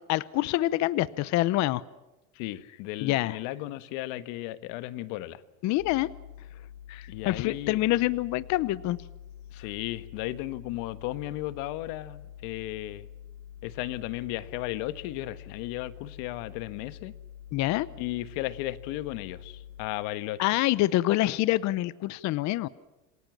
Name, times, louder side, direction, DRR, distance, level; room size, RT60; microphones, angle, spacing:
voice 1, 0.1-1.8 3.0-3.4 5.6-6.1 6.9-9.0 17.5-17.9 20.4-22.7, left 16 dB, 45° left, 18 dB, 0.8 m, -26 dB
voice 2, 2.3-5.4 7.1-7.8 9.5-13.1 13.6-17.1 18.0-20.4, left 16 dB, 65° left, 13 dB, 1.5 m, -35 dB
sound 1, 5.8-19.9, left 10 dB, 80° left, 2.8 m, -47 dB
28.0 x 20.0 x 7.4 m, 1.1 s
supercardioid pair, 130°, 39 cm